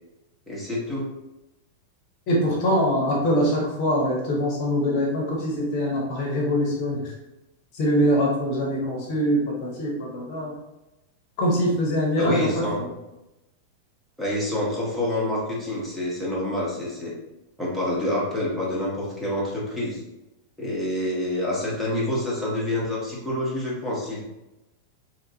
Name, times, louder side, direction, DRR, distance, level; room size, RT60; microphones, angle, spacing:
voice 1, 0.5-1.1 12.2-12.8 14.2-17.1 17.6-20.0 20.6-24.2, left 1 dB, ahead, -7 dB, 0.9 m, -27 dB
voice 2, 2.3-7.1 7.7-10.5 11.4-12.7, equal, 45° left, -2 dB, 0.8 m, -23 dB
2.8 x 2.4 x 2.6 m, 0.95 s
figure-of-eight pair, 90°, 0 cm